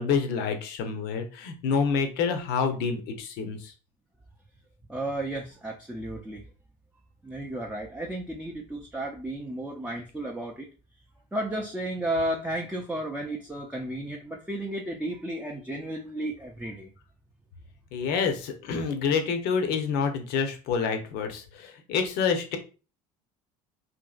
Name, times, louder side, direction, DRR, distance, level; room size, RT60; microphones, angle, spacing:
voice 1, 0.0-3.7 17.9-22.6, left 6 dB, 65° left, 6 dB, 0.6 m, -27 dB
voice 2, 4.9-6.4 7.2-10.7 11.3-16.9, right 1 dB, 5° right, 0 dB, 0.5 m, -33 dB
2.8 x 2.6 x 2.3 m, 0.34 s
hypercardioid pair, 75°, 18 cm